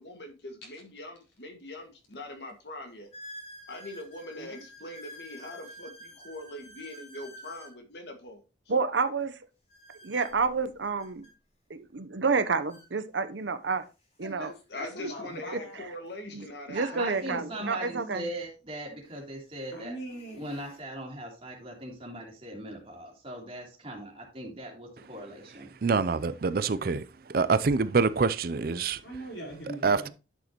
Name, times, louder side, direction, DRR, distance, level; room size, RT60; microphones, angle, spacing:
voice 1, 0.0-3.1 3.7-8.4 14.7-17.8, left 1 dB, 65° left, 1.9 m, -42 dB
sound 1, 1.4-1.5 2.1-2.2 3.1-7.8 9.7-11.3 12.3-12.4 12.7-12.9 13.7-13.8 16.0-16.1 18.2-18.3 19.0-19.3 19.8-20.8, equal, 35° left, 3.6 m, -49 dB
voice 2, 8.7-9.4 10.1-11.2 11.7-13.8 14.2-14.5 16.3-18.3, right 4 dB, 85° right, 0.8 m, -29 dB
voice 3, 14.2-15.9 16.9-18.4 19.7-20.5 29.0-30.1, right 1 dB, 85° left, 4.2 m, -42 dB
voice 4, 16.7-19.9 20.3-25.7, right 1 dB, 30° right, 3.1 m, -40 dB
voice 5, 25.8-29.0 29.7-30.1, right 4 dB, 55° right, 0.5 m, -26 dB
11.0 x 6.5 x 3.0 m
head